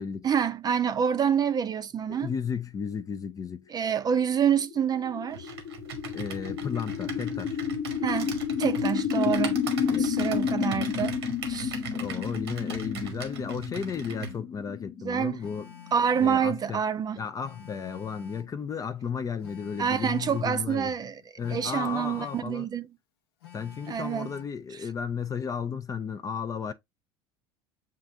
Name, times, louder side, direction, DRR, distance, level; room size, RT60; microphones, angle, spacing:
voice 1, 0.2-2.3 3.7-5.5 8.0-9.6 10.0-11.2 11.5-11.8 15.0-15.4 15.9-17.2 19.8-21.2 21.5-22.9 23.9-24.3, right 8 dB, 30° right, 0.5 m, -27 dB
voice 2, 2.1-3.7 6.1-7.6 9.9-10.1 11.9-15.7 16.2-16.8 17.2-20.9 21.4-22.7 23.5-26.7, left 6 dB, 25° left, 0.4 m, -34 dB
sound 1, 4.1-16.2, left 7 dB, 45° left, 0.8 m, -31 dB
Computer keyboard, 5.3-14.4, right 6 dB, 90° right, 1.0 m, -39 dB
Telephone, 15.4-16.5 17.4-18.6 19.4-20.6 21.4-22.5 23.4-24.5, left 8 dB, 85° left, 0.7 m, -48 dB
7.3 x 2.5 x 2.6 m
hypercardioid pair, 80°, 13 cm